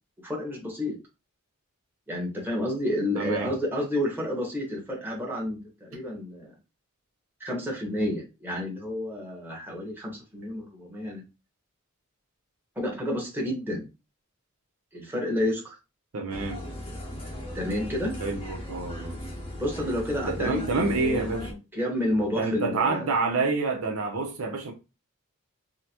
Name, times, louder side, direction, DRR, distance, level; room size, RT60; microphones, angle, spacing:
voice 1, 0.2-0.9 2.1-6.5 7.4-11.2 12.7-13.9 14.9-15.7 17.5-18.2 19.6-23.1, left 1 dB, 10° right, 1.1 m, -30 dB
voice 2, 3.1-3.5 5.9-6.0 16.1-16.6 18.2-19.2 20.2-21.5 22.3-24.7, right 3 dB, 70° right, 0.7 m, -28 dB
sound 1, 16.3-21.5, left 1 dB, 25° left, 0.7 m, -38 dB
3.8 x 2.1 x 2.9 m
head